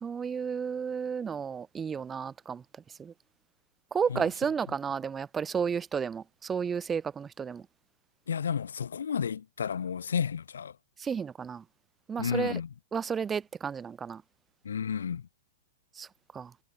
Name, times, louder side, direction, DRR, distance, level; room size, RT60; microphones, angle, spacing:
voice 1, 0.0-2.6 3.0-3.1 3.9-7.6 11.0-11.6 12.1-12.5 12.9-14.2 16.0-16.1 16.3-16.5, right 6 dB, 15° right, 2.3 m, -32 dB
voice 2, 8.3-10.8 12.2-12.7 14.6-15.3, left 7 dB, 70° left, 4.7 m, -32 dB
figure-of-eight pair, 110°, 0 cm